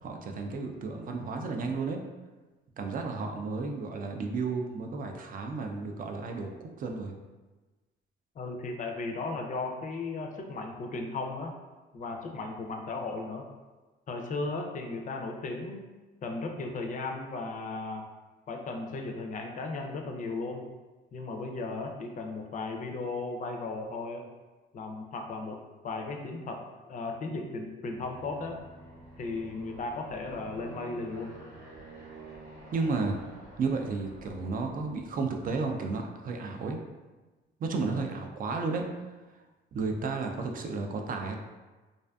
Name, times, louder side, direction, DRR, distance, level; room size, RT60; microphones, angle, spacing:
voice 1, 0.0-2.0 2.8-7.1 32.7-33.2 33.6-36.8 37.6-38.9 39.7-41.4, right 4 dB, 45° right, 3 dB, 0.4 m, -32 dB
voice 2, 8.4-11.5 11.9-13.5 14.1-15.8 16.2-18.1 18.5-20.6 21.1-24.2 24.7-28.6 29.2-31.4, left 3 dB, 40° left, 3 dB, 0.4 m, -36 dB
Aircraft, 27.9-35.3, right 1 dB, 85° right, 1.1 m, -49 dB
2.5 x 2.4 x 2.2 m, 1.2 s
cardioid pair, 90°, 20 cm